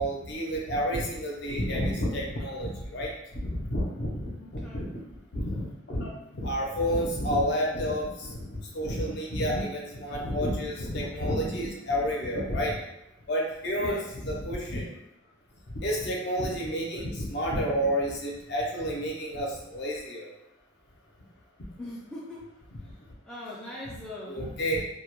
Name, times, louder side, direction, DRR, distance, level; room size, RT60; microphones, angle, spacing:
voice 1, 0.0-4.9 5.3-8.5 8.7-12.8 13.3-14.9 15.7-20.3 24.3-24.8, equal, 55° left, -2 dB, 0.5 m, -30 dB
voice 2, 4.4-4.9 13.8-14.1 21.8-22.4 23.2-24.5, left 1 dB, 5° left, -7 dB, 0.3 m, -41 dB
2.1 x 2.0 x 2.9 m, 0.88 s
head